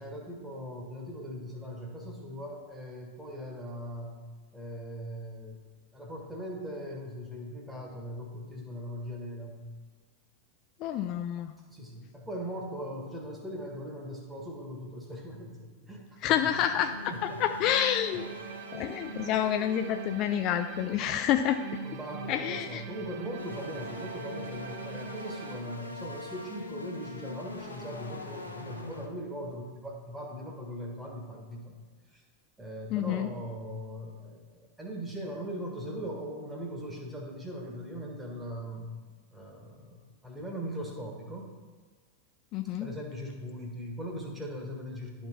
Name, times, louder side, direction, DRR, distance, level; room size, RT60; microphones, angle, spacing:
voice 1, 0.0-4.2 4.5-5.6 5.9-9.6 11.7-16.5 17.1-17.4 21.8-31.7 32.1-32.2 32.6-38.9 39.3-41.5 42.8-45.3, equal, 5° right, 0 dB, 1.6 m, -40 dB
voice 2, 10.8-11.6 16.2-18.3 18.7-21.8 22.3-22.8 32.9-33.3 42.5-42.9, left 10 dB, 40° left, 7 dB, 0.3 m, -28 dB
sound 1, 16.3-21.4 23.2-29.1, left 2 dB, 80° left, 0.9 m, -43 dB
sound 2, 18.1-25.6, right 8 dB, 45° right, 0.6 m, -43 dB
11.5 x 4.3 x 4.5 m, 1.5 s
figure-of-eight pair, 90°, 0 cm